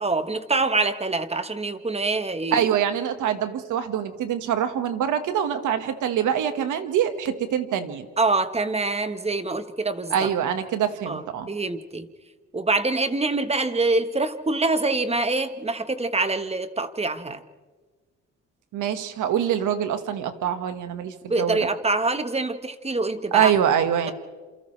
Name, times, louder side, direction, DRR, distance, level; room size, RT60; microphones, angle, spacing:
voice 1, 0.0-2.7 8.2-10.3 11.1-12.1 12.5-17.4 21.3-23.5, right 3 dB, 20° right, 10 dB, 1.3 m, -25 dB
voice 2, 2.5-8.1 10.1-11.5 18.7-21.6 23.3-24.1, right 9 dB, 80° right, 8 dB, 1.7 m, -24 dB
29.0 x 28.0 x 3.3 m, 1.4 s
cardioid pair, 90°, 30 cm